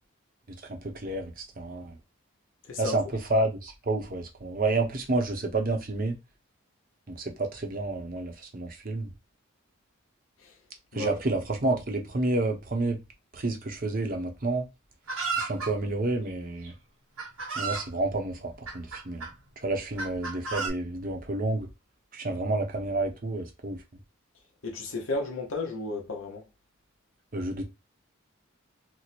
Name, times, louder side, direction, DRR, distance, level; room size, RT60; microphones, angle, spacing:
voice 1, 0.7-1.9 2.8-3.0 3.3-6.2 7.1-9.1 10.9-13.0 13.3-14.6 15.4-16.7 17.6-19.3 19.6-21.7 22.1-23.8 27.3-27.6, right 2 dB, 40° right, 0.7 m, -29 dB
voice 2, 2.7-3.0 10.4-10.5 10.9-11.2 24.6-26.4, left 3 dB, 65° left, 0.7 m, -33 dB
Chicken rooster, 15.1-15.7 16.6-16.7 17.2-17.9 18.7-19.3 20.0-20.7, right 4 dB, 80° right, 1.1 m, -32 dB
3.0 x 2.1 x 4.1 m
head